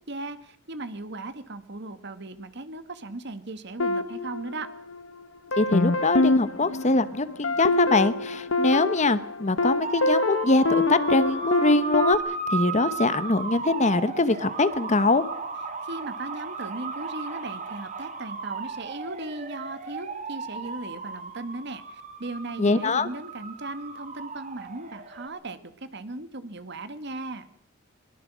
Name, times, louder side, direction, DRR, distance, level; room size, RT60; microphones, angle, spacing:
voice 1, 0.1-4.7 15.8-27.5, right 2 dB, 60° right, 11 dB, 1.8 m, -37 dB
sound 1, 3.8-5.1 5.5-12.1, left 2 dB, 80° left, 1.0 m, -26 dB
voice 2, 5.6-15.2 22.6-23.1, left 3 dB, 35° left, 15 dB, 1.0 m, -23 dB
sound 2, 9.8-25.3, right 5 dB, 40° right, 2.5 m, -35 dB
22.0 x 21.5 x 6.2 m, 0.65 s
head